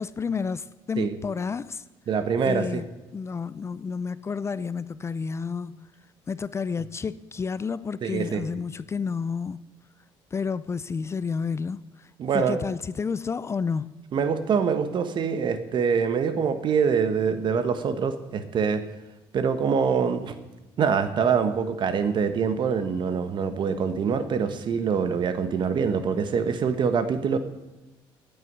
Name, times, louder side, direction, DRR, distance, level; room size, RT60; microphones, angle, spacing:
voice 1, 0.0-1.8 2.5-5.9 6.3-9.6 10.3-13.9, left 5 dB, 30° left, 0.5 m, -30 dB
voice 2, 2.1-2.8 8.0-8.4 12.2-12.6 14.1-18.8 19.3-20.3 20.8-27.4, right 6 dB, 55° right, 1.3 m, -24 dB
9.4 x 9.2 x 9.5 m
cardioid pair, 95°, 10 cm